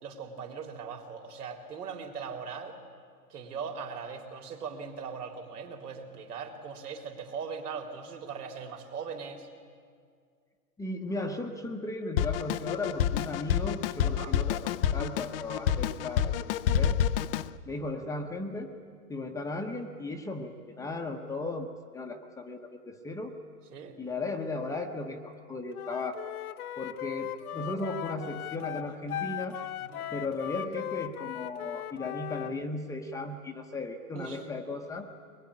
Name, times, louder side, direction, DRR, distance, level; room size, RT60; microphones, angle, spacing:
voice 1, 0.0-2.8 3.3-9.5 14.0-14.4 23.7-24.0 29.8-30.1 34.1-34.4, right 6 dB, 70° right, 3 dB, 4.1 m, -40 dB
voice 2, 10.8-16.3 16.7-17.0 17.6-18.7 19.1-21.7 21.9-23.3 24.0-26.3 26.8-29.6 30.1-35.1, left 2 dB, 5° left, 3 dB, 0.9 m, -36 dB
Drum kit, 12.2-17.5, left 9 dB, 40° left, 0.6 m, -28 dB
Wind instrument woodwind instrument, 25.7-32.5, left 12 dB, 65° left, 1.0 m, -38 dB
22.5 x 21.5 x 10.0 m, 2.1 s
hypercardioid pair, 135°, 47 cm